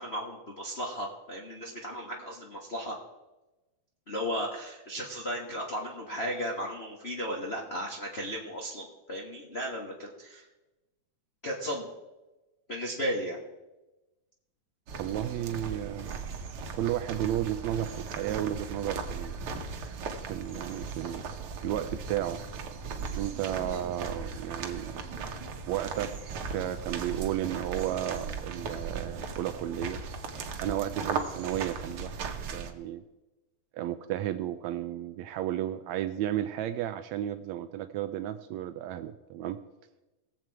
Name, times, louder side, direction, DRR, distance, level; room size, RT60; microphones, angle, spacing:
voice 1, 0.0-3.0 4.1-10.4 11.4-11.9 12.7-13.4 23.7-23.8, equal, 85° left, -3 dB, 0.5 m, -35 dB
sound 1, 14.9-32.7, right 5 dB, 65° right, 1.4 m, -37 dB
voice 2, 15.0-16.2 16.7-19.4 20.3-22.4 23.1-24.9 25.7-26.2 26.5-30.0 30.6-33.0 33.7-39.6, right 12 dB, 80° right, 10 dB, 1.6 m, -33 dB
19.5 x 7.6 x 4.7 m, 1.1 s
omnidirectional pair, 3.6 m